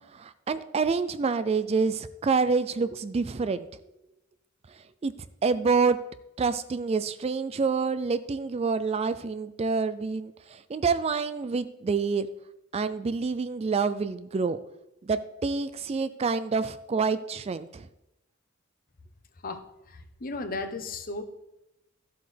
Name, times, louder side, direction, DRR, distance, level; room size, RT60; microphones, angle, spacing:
voice 1, 0.1-3.7 4.7-5.1 5.4-6.0 6.4-12.3 12.7-14.6 15.0-17.9, right 4 dB, 30° right, 13 dB, 0.3 m, -27 dB
voice 2, 19.9-21.2, left 3 dB, 45° left, 8 dB, 0.9 m, -35 dB
13.0 x 7.8 x 3.4 m, 0.92 s
head